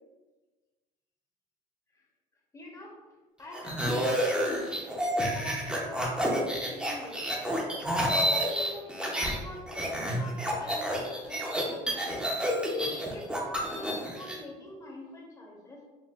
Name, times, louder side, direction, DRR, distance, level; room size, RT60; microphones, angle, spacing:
voice 1, 2.5-2.9 3.4-4.7 5.2-7.5 8.1-12.3 13.1-15.8, left 1 dB, 20° left, -2 dB, 1.0 m, -45 dB
sound 1, 3.5-9.4 9.7-14.4, equal, 5° right, 0.8 m, -29 dB
4.4 x 2.6 x 2.5 m, 1.2 s
cardioid pair, 100°, 16 cm